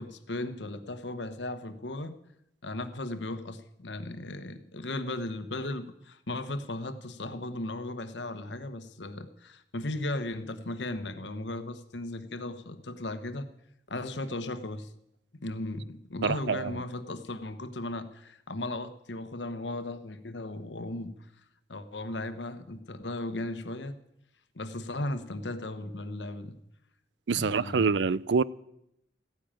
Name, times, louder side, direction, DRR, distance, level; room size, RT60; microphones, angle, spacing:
voice 1, 0.0-2.2 2.6-13.5 13.9-14.9 15.4-21.1 21.7-23.9 24.5-26.6 27.3-27.9, left 2 dB, 85° left, 1.2 m, -36 dB
voice 2, 16.2-16.7 27.3-28.4, right 5 dB, 85° right, 0.5 m, -26 dB
14.5 x 10.0 x 8.9 m
head